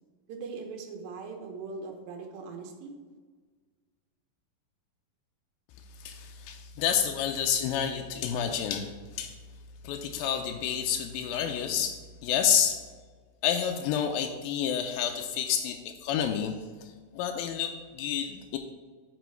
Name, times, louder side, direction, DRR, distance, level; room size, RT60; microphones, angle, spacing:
voice 1, 0.3-2.9, right 4 dB, 90° right, 3 dB, 2.8 m, -40 dB
voice 2, 6.0-9.3 9.8-12.0 12.2-12.8 13.4-16.5 17.1-18.6, left 8 dB, 90° left, 4 dB, 2.3 m, -29 dB
8.2 x 5.0 x 4.5 m, 1.5 s
omnidirectional pair, 4.0 m